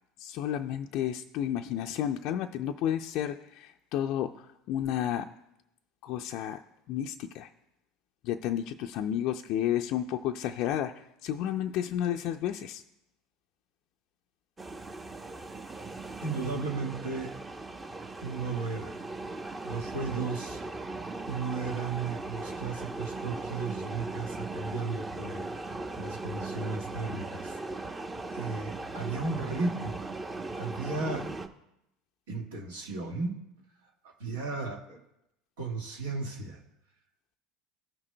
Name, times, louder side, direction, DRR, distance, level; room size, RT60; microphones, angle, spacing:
voice 1, 0.2-5.3 6.0-6.6 6.9-7.5 8.2-12.8, left 10 dB, 60° left, 4 dB, 0.4 m, -31 dB
sound 1, 14.6-31.5, right 2 dB, 20° right, 0.8 m, -38 dB
voice 2, 16.2-17.3 18.2-19.0 19.6-20.6 21.3-27.6 28.3-30.0 30.6-31.3 32.3-33.4 34.0-35.0 35.6-36.6, right 4 dB, 75° right, 1 dB, 1.6 m, -35 dB
16.0 x 6.0 x 2.2 m, 0.84 s
hypercardioid pair, 75°, 0 cm